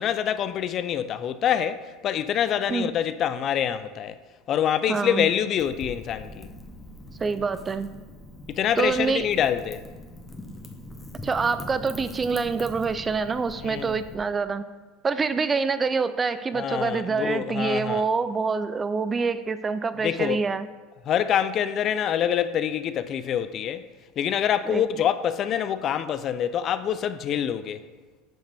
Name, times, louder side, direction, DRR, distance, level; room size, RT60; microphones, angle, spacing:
voice 1, 0.0-4.2 4.5-6.5 8.5-9.8 13.6-14.0 16.5-18.0 20.0-20.5 21.1-23.9 24.2-27.8, left 9 dB, 45° left, 0.4 m, -26 dB
voice 2, 4.9-5.3 7.2-7.9 8.8-9.3 11.2-14.6 15.0-20.7 24.7-24.8, right 4 dB, 25° right, 0.4 m, -26 dB
Wind / Fire, 5.6-14.2, left 1 dB, 15° left, 1.2 m, -42 dB
9.0 x 5.2 x 3.4 m
supercardioid pair, 95°, 0 cm